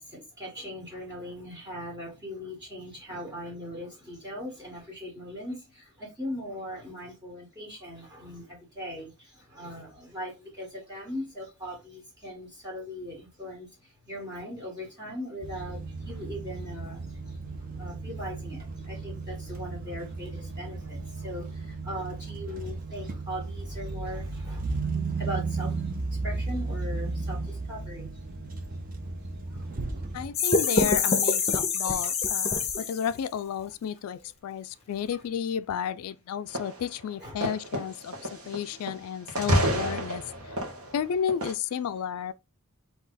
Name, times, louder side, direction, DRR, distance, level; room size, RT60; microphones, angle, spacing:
voice 1, 0.0-28.2 28.5-28.8 29.2-29.6 29.9-30.4 34.7-34.9 37.2-37.4 38.1-38.5 40.9-41.0, equal, 20° right, 1.2 m, -40 dB
sound 1, 15.4-30.3, right 3 dB, 40° right, 0.7 m, -34 dB
voice 2, 30.1-38.1 38.5-40.5 40.9-42.3, left 8 dB, 75° left, 0.3 m, -32 dB
sound 2, 30.3-33.2, left 4 dB, 30° left, 0.7 m, -25 dB
sound 3, 36.5-36.9 37.4-39.0 39.3-41.5, right 1 dB, 75° right, 1.2 m, -29 dB
4.2 x 2.8 x 3.8 m
head